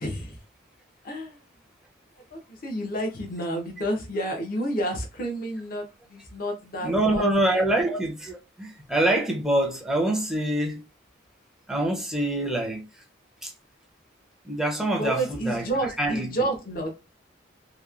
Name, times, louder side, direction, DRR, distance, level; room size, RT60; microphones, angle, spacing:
voice 1, 0.0-0.4 1.0-1.4 2.3-7.2 7.5-7.7 15.0-16.9, right 1 dB, 50° left, 0.7 m, -30 dB
voice 2, 6.8-10.8 11.7-13.0 13.4-13.5 14.4-16.5, right 1 dB, 5° right, 0.5 m, -25 dB
2.9 x 2.1 x 2.4 m
head